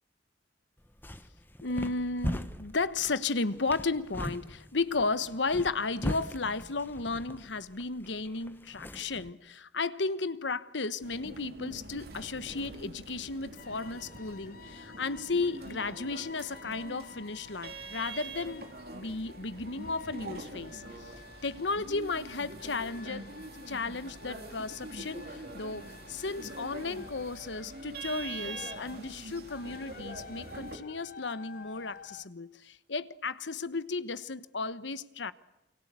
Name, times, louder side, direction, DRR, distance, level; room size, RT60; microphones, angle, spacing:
sound 1, 0.8-9.3, equal, 10° left, 1.3 m, -40 dB
voice 1, 1.6-21.1 21.4-23.3 23.7-35.3, left 3 dB, 85° left, 1.2 m, -34 dB
sound 2, 11.0-30.8, right 2 dB, 55° right, 3.9 m, -44 dB
sound 3, 13.6-32.3, left 5 dB, 50° left, 1.0 m, -52 dB
28.5 x 25.0 x 8.3 m
head